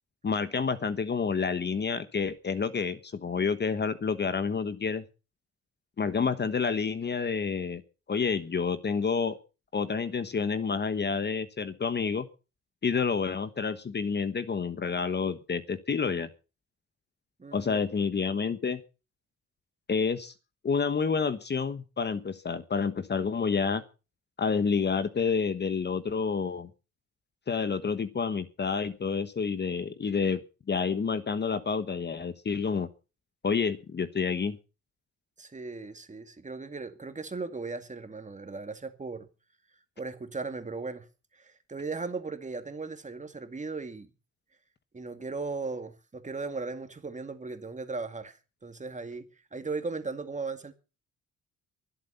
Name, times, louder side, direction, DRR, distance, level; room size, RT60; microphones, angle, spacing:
voice 1, 0.2-5.0 6.0-7.8 8.1-9.4 9.7-12.3 12.8-16.3 17.5-18.8 19.9-20.3 20.6-23.8 24.4-26.7 27.5-30.4 30.7-32.9 33.4-34.6, left 5 dB, 35° left, 1.3 m, -29 dB
voice 2, 17.4-17.8 35.4-39.3 40.0-41.0 41.3-44.1 44.9-49.3 49.5-50.7, right 4 dB, 25° right, 2.2 m, -37 dB
23.0 x 8.1 x 5.6 m
cardioid pair, 90°, 30 cm